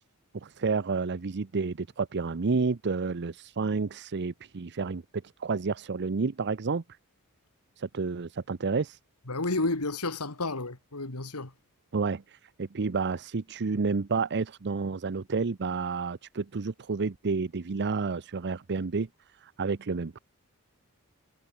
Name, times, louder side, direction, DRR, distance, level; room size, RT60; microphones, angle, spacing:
voice 1, 0.3-5.0 5.4-6.8 7.8-9.0 11.9-19.1 19.4-20.2, right 4 dB, 50° right, 0.7 m, -30 dB
voice 2, 9.3-11.5, left 2 dB, 90° left, 2.6 m, -31 dB
head